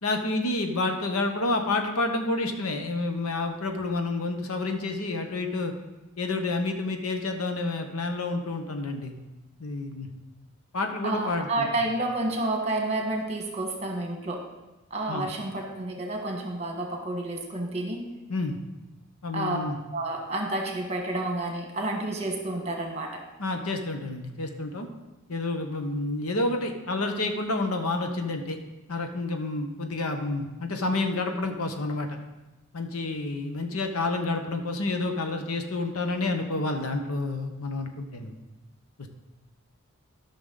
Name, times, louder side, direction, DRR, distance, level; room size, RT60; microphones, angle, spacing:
voice 1, 0.0-5.7 6.2-9.1 9.6-10.1 10.7-11.7 15.1-15.3 18.3-18.6 19.2-19.8 23.4-24.9 25.3-28.6 28.9-32.1 32.7-38.3, left 2 dB, 80° left, 5 dB, 1.1 m, -29 dB
voice 2, 11.0-14.5 14.9-18.1 19.3-19.6 19.9-23.2, right 2 dB, 30° right, 1 dB, 1.5 m, -30 dB
13.5 x 6.0 x 3.9 m, 1.1 s
head